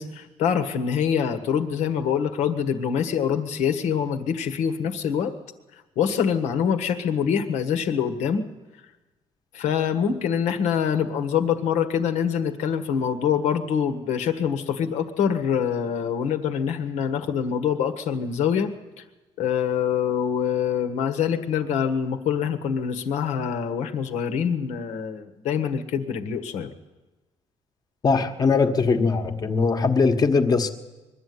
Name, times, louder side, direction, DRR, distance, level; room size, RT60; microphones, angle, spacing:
voice 1, 0.0-5.3 5.9-8.5 9.5-18.7 19.4-26.7, left 7 dB, 80° left, 7 dB, 1.6 m, -25 dB
voice 2, 28.0-30.7, left 4 dB, 35° left, 7 dB, 1.4 m, -21 dB
21.5 x 12.5 x 9.6 m, 1.1 s
cardioid pair, 120°, 12 cm